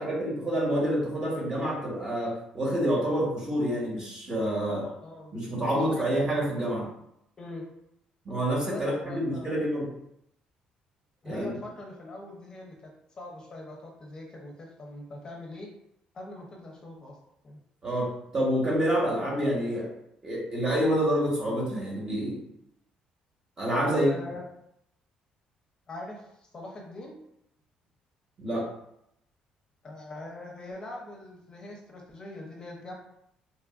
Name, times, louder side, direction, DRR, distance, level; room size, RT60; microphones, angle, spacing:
voice 1, 0.0-4.8 5.3-6.9 8.2-9.9 11.2-11.5 17.8-19.9 20.2-22.4 23.6-24.1 28.4-28.7, equal, 30° right, -4 dB, 1.1 m, -27 dB
voice 2, 4.7-6.3 7.4-7.6 8.6-9.7 11.2-15.7 16.1-17.2 17.4-17.6 23.8-24.4 25.9-27.2 29.8-32.9, left 2 dB, 35° left, -1 dB, 0.6 m, -42 dB
2.9 x 2.4 x 2.3 m, 0.76 s
cardioid pair, 105°, 3 cm